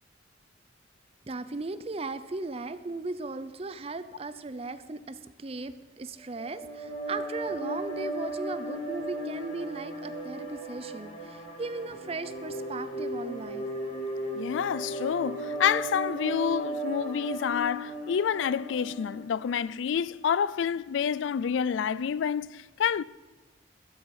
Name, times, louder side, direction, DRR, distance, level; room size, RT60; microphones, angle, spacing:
voice 1, 1.3-13.7, right 3 dB, 30° right, 0.5 m, -37 dB
sound 1, 6.3-19.6, right 1 dB, 40° left, 3.9 m, -36 dB
voice 2, 14.3-23.0, left 7 dB, 75° left, 0.3 m, -28 dB
13.0 x 12.5 x 4.8 m
head